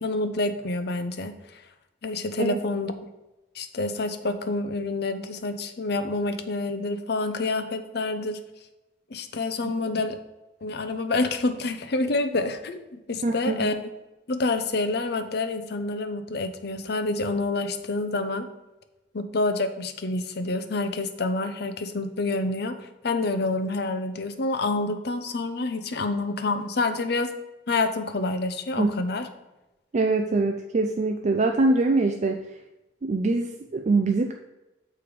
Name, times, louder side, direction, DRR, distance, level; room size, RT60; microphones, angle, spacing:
voice 1, 0.0-1.6 2.0-3.1 3.5-8.4 9.1-10.2 10.6-13.7 14.3-18.5 19.1-27.3 27.7-29.3, left 2 dB, 60° left, 8 dB, 0.7 m, -28 dB
voice 2, 13.2-13.7 28.8-28.9 29.9-32.4 33.0-34.3, right 3 dB, 40° right, 4 dB, 0.4 m, -23 dB
6.6 x 4.8 x 5.2 m, 1.0 s
head